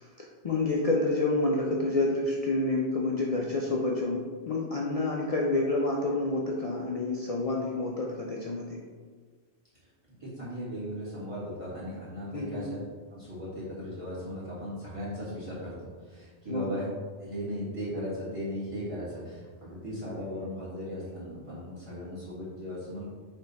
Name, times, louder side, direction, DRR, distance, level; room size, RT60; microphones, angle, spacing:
voice 1, 0.0-8.8 12.3-12.7 16.5-16.7, left 2 dB, 65° left, -2 dB, 0.3 m, -28 dB
voice 2, 10.2-12.8 13.1-15.7 16.0-16.9 17.2-23.0, equal, 30° right, -9 dB, 1.6 m, -37 dB
3.4 x 3.3 x 4.0 m, 1.5 s
omnidirectional pair, 1.2 m